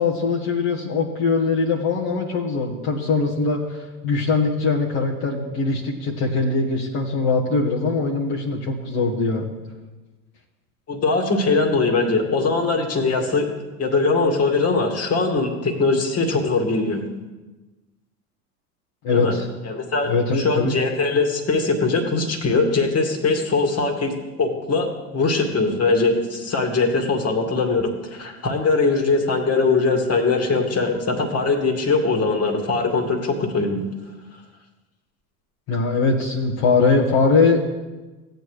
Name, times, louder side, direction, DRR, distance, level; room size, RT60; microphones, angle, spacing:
voice 1, 0.0-9.4 19.0-19.5 20.1-20.7 35.7-37.6, left 4 dB, 50° left, -3 dB, 1.8 m, -21 dB
voice 2, 10.9-13.5 13.8-17.0 19.1-19.4 19.6-24.1 24.4-33.8, left 3 dB, 30° left, 3 dB, 2.3 m, -21 dB
16.5 x 9.3 x 3.3 m, 1.2 s
figure-of-eight pair, 75°, 46 cm